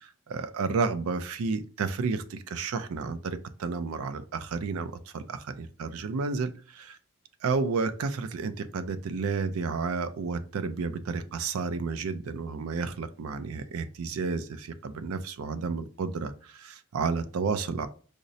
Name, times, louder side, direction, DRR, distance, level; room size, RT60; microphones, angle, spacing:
voice 1, 0.3-7.0 7.4-17.9, right 4 dB, 85° right, 12 dB, 0.4 m, -31 dB
5.0 x 2.0 x 2.6 m, 0.41 s
head